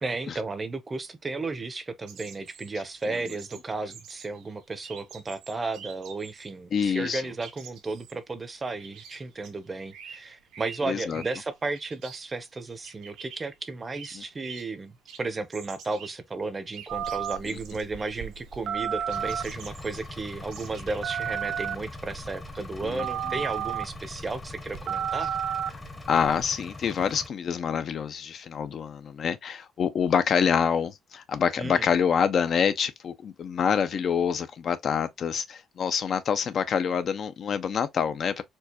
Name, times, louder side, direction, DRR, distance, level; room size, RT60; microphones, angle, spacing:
voice 1, 0.0-14.9 15.2-25.3 31.6-31.9, right 3 dB, 25° right, 0.6 m, -34 dB
sound 1, 2.1-6.5 6.8-14.8 15.1-21.1, right 7 dB, 90° right, 1.0 m, -48 dB
voice 2, 6.7-7.2 10.8-11.2 14.1-14.2 17.4-17.6 22.8-23.1 26.1-38.4, left 7 dB, 55° left, 0.5 m, -26 dB
Telephone, 16.9-26.4, right 9 dB, 65° right, 0.4 m, -34 dB
Engine, 19.1-27.3, left 3 dB, 25° left, 0.8 m, -42 dB
4.4 x 2.2 x 2.8 m
cardioid pair, 100°, 0 cm